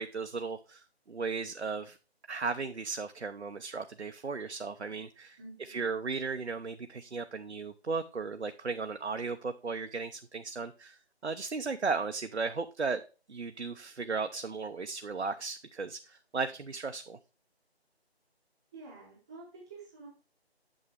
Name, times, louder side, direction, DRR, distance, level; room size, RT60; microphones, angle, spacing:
voice 1, 0.0-2.0 2.3-13.0 13.3-17.2, right 4 dB, 90° right, 0.8 m, -36 dB
voice 2, 5.4-5.9 18.7-20.1, right 3 dB, 5° right, 0.8 m, -49 dB
8.7 x 6.4 x 3.3 m
figure-of-eight pair, 155°, 32 cm